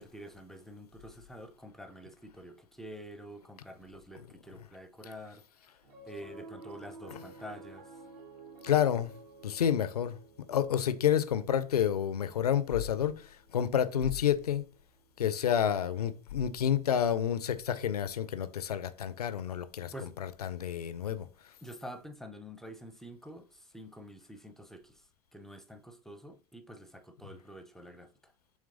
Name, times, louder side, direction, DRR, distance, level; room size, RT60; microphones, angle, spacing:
voice 1, 0.0-5.4 6.1-7.9 19.9-20.1 21.6-25.0 25.3-28.3, equal, ahead, 0.5 m, -47 dB
Piano, 5.8-16.3, right 3 dB, 70° right, 1.4 m, -53 dB
voice 2, 8.6-9.1 9.4-10.2 10.5-14.6 15.2-19.9 20.2-21.3, left 9 dB, 75° left, 0.4 m, -29 dB
6.3 x 3.2 x 2.5 m
figure-of-eight pair, 75°, 20 cm